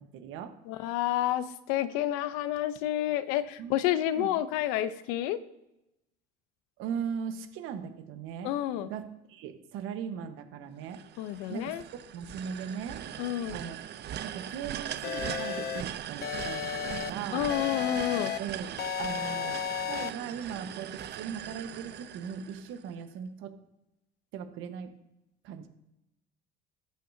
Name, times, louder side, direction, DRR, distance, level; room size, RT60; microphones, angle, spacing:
voice 1, 0.0-0.5 3.6-3.9 4.2-4.3 6.8-8.5 8.8-11.0 11.5-11.8 12.1-13.0 13.5-13.8 14.2-17.5 18.4-19.6 19.9-23.5 24.3-24.9 25.4-25.7, right 7 dB, 70° right, 8 dB, 1.3 m, -39 dB
voice 2, 0.7-5.4 8.4-8.9 11.2-11.8 13.2-13.6 17.3-18.3, left 12 dB, 80° left, 13 dB, 0.8 m, -29 dB
sound 1, 10.9-23.0, right 11 dB, 55° right, 0.7 m, -40 dB
sound 2, 15.0-15.8 16.2-17.1 17.5-18.4 18.8-20.1, left 11 dB, 50° left, 0.6 m, -33 dB
13.5 x 8.3 x 2.8 m, 0.88 s
supercardioid pair, 75°, 21 cm